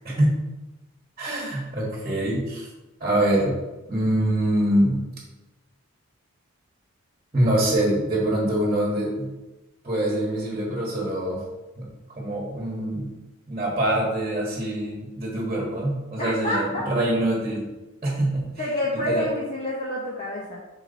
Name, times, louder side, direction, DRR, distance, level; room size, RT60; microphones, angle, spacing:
voice 1, 0.0-0.4 1.2-2.7 3.0-3.6 3.9-5.1 7.3-9.3 9.8-11.4 11.8-11.9 12.2-13.1 13.5-17.7 18.0-18.5 19.1-19.2, right 1 dB, 25° right, -4 dB, 1.5 m, -24 dB
voice 2, 16.2-16.9 18.6-20.6, left 1 dB, 30° left, -5 dB, 0.9 m, -28 dB
6.1 x 4.6 x 4.0 m, 1.1 s
head